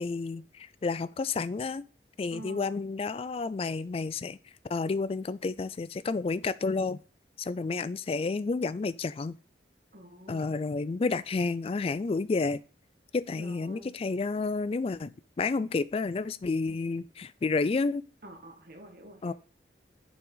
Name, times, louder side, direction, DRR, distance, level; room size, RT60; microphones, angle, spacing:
voice 1, 0.0-1.8 2.2-4.4 4.7-7.0 7.4-9.4 10.3-12.6 13.1-15.1 15.4-18.0 19.2-19.3, left 4 dB, 30° left, 0.3 m, -30 dB
voice 2, 2.3-2.8 9.9-10.5 13.3-13.9 18.2-19.3, right 1 dB, 50° right, 1.7 m, -48 dB
7.0 x 5.8 x 3.9 m
head